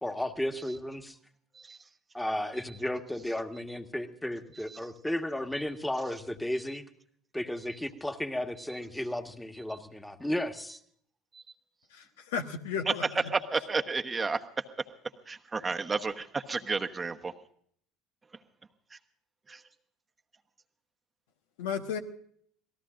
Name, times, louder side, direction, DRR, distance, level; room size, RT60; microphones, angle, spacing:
voice 1, 0.0-1.2 2.1-6.8 7.3-10.8, left 1 dB, 5° left, 7 dB, 1.7 m, -34 dB
voice 2, 11.9-13.0 21.6-22.0, left 6 dB, 70° left, 6 dB, 1.3 m, -34 dB
voice 3, 12.9-14.6 15.3-17.3 18.9-19.0 19.5-19.6, right 4 dB, 20° right, 6 dB, 1.1 m, -32 dB
26.5 x 18.5 x 2.6 m, 0.63 s
figure-of-eight pair, 65°, 0 cm